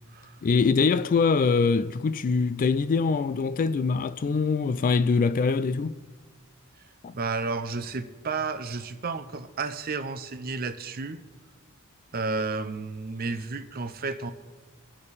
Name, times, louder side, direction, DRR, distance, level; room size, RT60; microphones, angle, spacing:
voice 1, 0.4-6.0 7.0-7.2, left 4 dB, 40° left, 0.3 m, -23 dB
voice 2, 7.1-11.2 12.1-14.3, right 4 dB, 40° right, 0.6 m, -32 dB
20.5 x 6.9 x 4.1 m
head